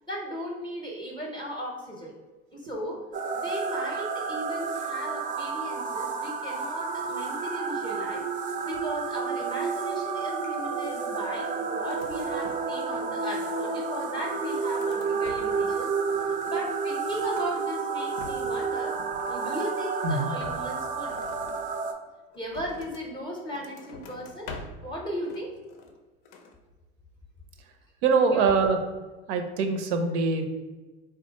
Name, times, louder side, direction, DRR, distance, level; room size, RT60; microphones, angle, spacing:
voice 1, 0.1-2.1 2.5-3.0 3.3-8.2 8.6-15.9 16.2-19.0 19.2-21.2 22.3-24.5 24.8-25.5 28.3-28.7, equal, 15° left, -1 dB, 0.6 m, -36 dB
sound 1, 3.1-21.9, right 5 dB, 25° right, 0.4 m, -30 dB
sound 2, 11.8-12.8 13.0-13.8 14.3-15.8 16.1-17.5 17.9-18.6 18.9-19.9 20.3-23.1 23.5-24.9 25.2-26.0 26.2-26.6, left 3 dB, 65° left, 0.5 m, -46 dB
voice 2, 28.0-28.8 29.3-30.5, right 4 dB, 80° right, 6 dB, 0.5 m, -23 dB
3.5 x 2.2 x 2.8 m, 1.2 s
hypercardioid pair, 80°, 33 cm